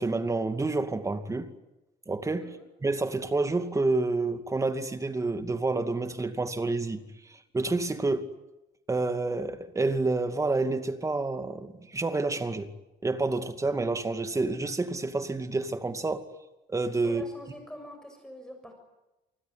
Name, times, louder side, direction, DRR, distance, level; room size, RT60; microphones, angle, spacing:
voice 1, 0.0-1.5 2.1-7.0 7.5-8.3 8.9-12.7 13.0-16.2 16.7-17.2, right 3 dB, 20° right, 2.3 m, -29 dB
voice 2, 17.0-18.7, equal, 5° left, 7.1 m, -44 dB
28.0 x 20.5 x 9.8 m
cardioid pair, 110°, 17 cm